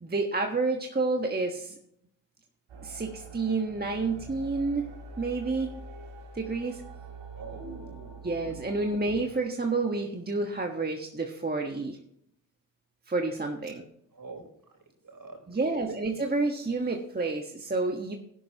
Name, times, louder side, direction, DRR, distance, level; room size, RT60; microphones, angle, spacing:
voice 1, 0.0-1.8 2.8-4.8 5.2-5.7 6.3-6.8 8.2-12.0 13.1-13.8 15.5-18.2, right 3 dB, 20° right, 2 dB, 1.4 m, -29 dB
sound 1, 2.7-9.2, right 4 dB, 70° right, 2.3 m, -45 dB
voice 2, 7.4-8.2 14.1-14.4 15.0-16.0, right 3 dB, 45° right, 2 dB, 4.4 m, -43 dB
13.5 x 10.5 x 2.9 m, 0.74 s
hypercardioid pair, 40°, 45 cm